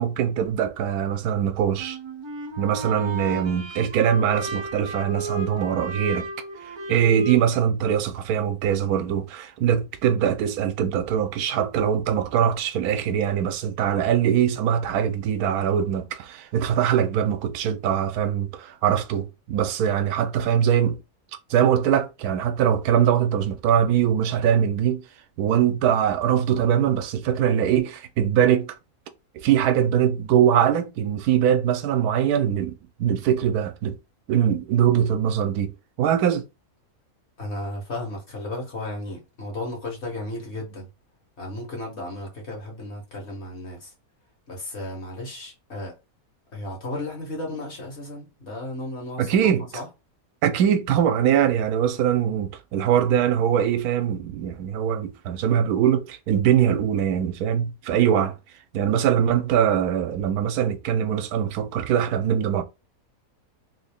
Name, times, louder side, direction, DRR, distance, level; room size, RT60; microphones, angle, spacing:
voice 1, 0.0-2.0 2.6-6.3 6.6-21.0 21.5-25.0 25.4-28.7 29.3-34.0 34.3-35.7 36.0-36.5 49.2-49.7 50.4-58.3 58.7-62.6, right 9 dB, 85° right, 1.1 m, -22 dB
sound 1, 1.8-7.4, right 3 dB, 35° right, 0.4 m, -33 dB
voice 2, 37.4-40.9 41.4-43.9 44.5-45.9 46.5-49.4 49.7-49.9, left 1 dB, 50° left, 1.6 m, -34 dB
3.2 x 2.7 x 3.4 m
omnidirectional pair, 1.6 m